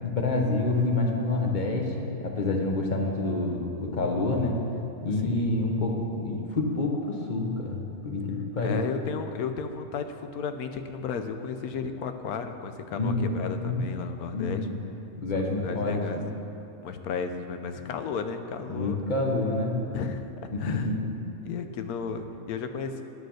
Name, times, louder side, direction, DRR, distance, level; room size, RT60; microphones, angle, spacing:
voice 1, 0.0-4.6 5.0-8.8 12.9-13.9 14.3-14.8 15.1-16.2 18.7-19.8 20.5-21.2, left 2 dB, 35° left, 1 dB, 1.0 m, -28 dB
voice 2, 8.6-14.7 15.3-16.2 16.8-19.0 19.9-20.2 20.6-20.9 21.4-23.0, left 6 dB, 90° left, 8 dB, 1.2 m, -34 dB
9.3 x 6.5 x 6.4 m, 3.0 s
omnidirectional pair, 1.5 m